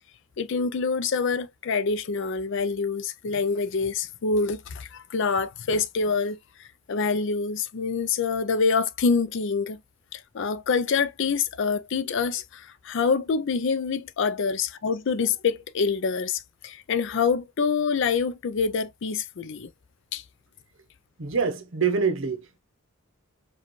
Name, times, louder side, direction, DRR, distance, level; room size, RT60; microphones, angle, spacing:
voice 1, 0.4-6.4 6.9-9.8 10.1-19.7 20.1-20.2, left 5 dB, 55° left, 0.4 m, -26 dB
voice 2, 21.2-22.6, right 5 dB, 55° right, 0.8 m, -25 dB
4.8 x 2.3 x 3.0 m
head